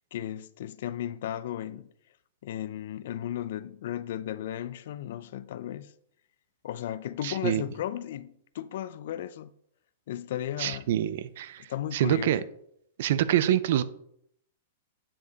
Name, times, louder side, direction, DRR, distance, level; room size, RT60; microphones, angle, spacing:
voice 1, 0.0-1.9 2.4-5.9 6.6-9.5 10.1-10.9 11.6-12.4, left 11 dB, 60° left, 0.4 m, -35 dB
voice 2, 7.2-7.6 10.6-12.4 13.0-13.8, right 11 dB, 60° right, 0.5 m, -26 dB
8.9 x 4.9 x 4.0 m
hypercardioid pair, 155°, 0 cm